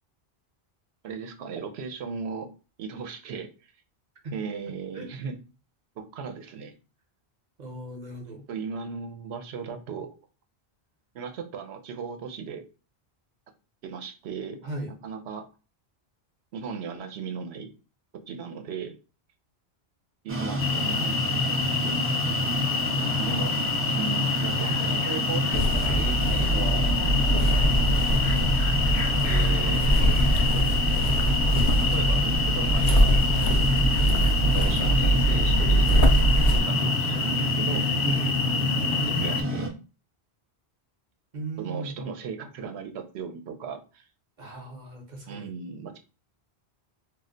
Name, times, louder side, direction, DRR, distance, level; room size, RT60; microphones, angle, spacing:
voice 1, 1.0-2.5 2.8-3.5 4.3-5.4 6.0-6.7 8.5-10.1 11.1-12.6 13.8-14.6 15.0-15.5 16.5-17.7 18.3-19.0 20.2-22.3 23.2-23.7 23.9-26.9 29.2-30.1 31.7-33.4 34.4-35.9 36.6-37.9 38.9-39.7 41.6-44.1 45.3-46.0, right 6 dB, 90° right, 0.8 m, -37 dB
voice 2, 7.6-8.5 14.6-14.9 34.5-34.8 38.0-38.3 41.3-42.1 44.4-45.5, right 2 dB, 50° right, 0.8 m, -38 dB
sound 1, 20.3-39.7, equal, 25° right, 0.3 m, -29 dB
sound 2, 20.6-39.4, left 5 dB, 90° left, 0.9 m, -28 dB
sound 3, 25.5-36.6, right 1 dB, 60° left, 0.6 m, -23 dB
2.3 x 2.1 x 3.7 m
omnidirectional pair, 1.1 m